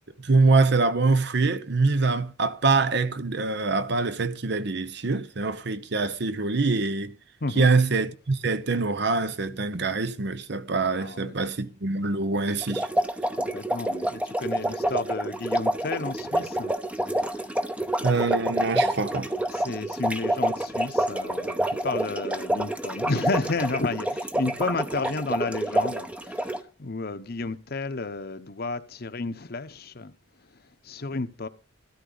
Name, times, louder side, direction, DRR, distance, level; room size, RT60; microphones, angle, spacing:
voice 1, 0.2-7.2 7.6-12.9 18.0-19.3, right 3 dB, 60° right, 0.9 m, -24 dB
voice 2, 11.0-11.5 13.3-17.8 19.5-30.1 30.4-31.5, left 3 dB, 55° left, 0.9 m, -32 dB
sound 1, 12.6-26.6, right 1 dB, 5° right, 0.8 m, -28 dB
13.5 x 12.0 x 4.0 m
head